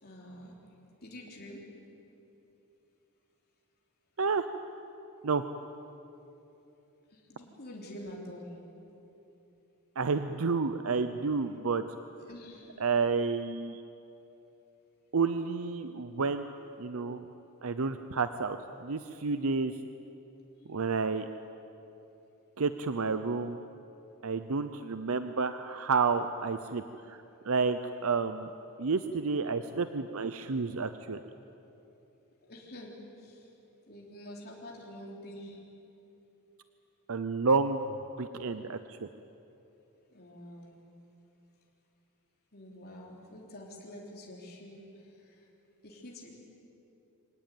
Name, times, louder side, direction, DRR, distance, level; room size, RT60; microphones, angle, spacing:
voice 1, 0.0-0.6 1.0-1.6 7.1-8.5 12.2-12.8 32.5-33.5 33.9-35.6 40.1-40.7 42.5-45.5 45.8-46.3, left 1 dB, 45° left, -2 dB, 3.6 m, -47 dB
voice 2, 10.0-11.8 12.8-13.8 15.1-16.5 16.8-17.3 17.6-19.7 20.7-21.3 22.6-23.6 24.2-26.8 27.1-27.2 27.4-28.5 28.8-31.2 37.1-39.1, right 4 dB, 70° right, 10 dB, 0.7 m, -30 dB
24.0 x 18.5 x 9.2 m, 2.9 s
head